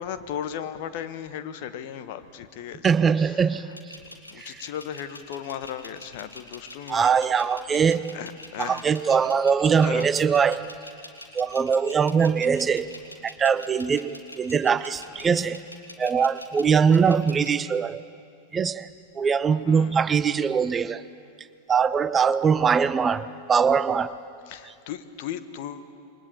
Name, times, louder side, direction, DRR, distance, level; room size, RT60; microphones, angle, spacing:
voice 1, 0.0-2.9 3.2-3.6 4.3-7.1 7.4-7.5 8.1-9.2 9.8-10.1 17.0-17.3 19.5-20.0 24.5-25.9, left 9 dB, 50° left, 11 dB, 1.4 m, -36 dB
voice 2, 2.8-3.7 4.4-4.6 6.9-8.1 8.6-10.7 11.3-12.9 13.2-15.6 16.0-18.0 18.5-18.9 19.2-21.0 21.7-24.2, right 6 dB, 20° right, 15 dB, 0.6 m, -22 dB
sound 1, 3.7-17.5, left 1 dB, 85° left, 2.9 m, -44 dB
28.0 x 23.5 x 8.9 m, 2.5 s
figure-of-eight pair, 90°, 0 cm